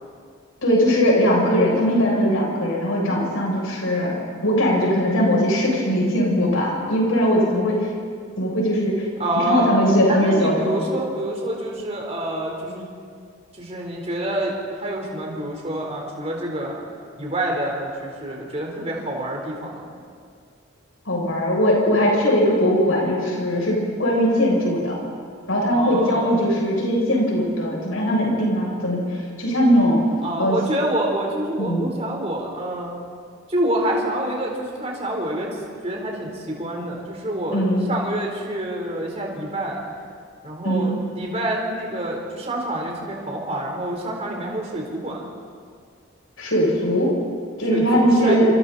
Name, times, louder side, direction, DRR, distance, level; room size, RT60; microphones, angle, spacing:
voice 1, 0.6-4.1 4.4-7.9 8.4-9.0 9.3-10.8 21.1-25.0 25.5-30.0 30.4-30.6 31.6-31.9 37.5-37.8 40.6-41.0 46.4-47.2 47.6-48.5, equal, 85° left, -2 dB, 7.4 m, -20 dB
voice 2, 9.2-9.7 10.1-12.9 13.5-16.8 17.2-19.9 25.7-26.4 30.2-32.9 33.5-39.8 40.4-45.3 47.7-47.8 48.2-48.4, right 1 dB, 30° right, -1 dB, 4.0 m, -27 dB
27.0 x 26.5 x 4.2 m, 2.1 s
head